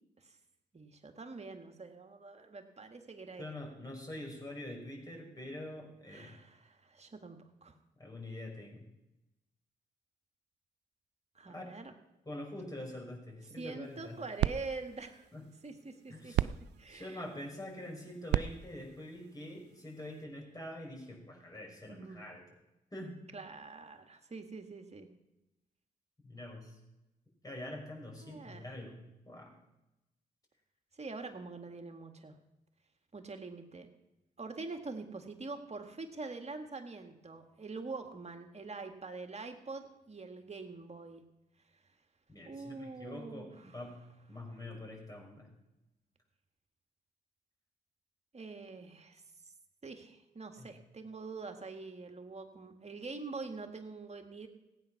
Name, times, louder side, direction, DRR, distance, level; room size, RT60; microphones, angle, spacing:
voice 1, 0.7-3.5 6.1-7.7 11.4-11.9 13.6-15.3 15.6-16.3 16.8-17.2 21.8-22.3 23.3-25.1 28.2-28.6 30.9-32.4 33.1-33.9 34.4-41.2 42.4-43.5 48.3-49.2 49.8-54.5, right 3 dB, 40° right, 5 dB, 2.0 m, -45 dB
voice 2, 3.4-6.4 8.0-8.9 11.5-11.8 12.3-14.2 15.3-15.4 16.1-16.5 16.9-22.4 22.9-23.2 26.2-26.8 27.4-29.5 42.3-44.0 44.3-45.5 50.6-50.7, left 1 dB, 20° left, 1 dB, 5.8 m, -45 dB
sound 1, 13.8-20.2, right 13 dB, 75° right, 0.4 m, -38 dB
16.0 x 9.2 x 5.9 m, 0.95 s
supercardioid pair, 50°, 18 cm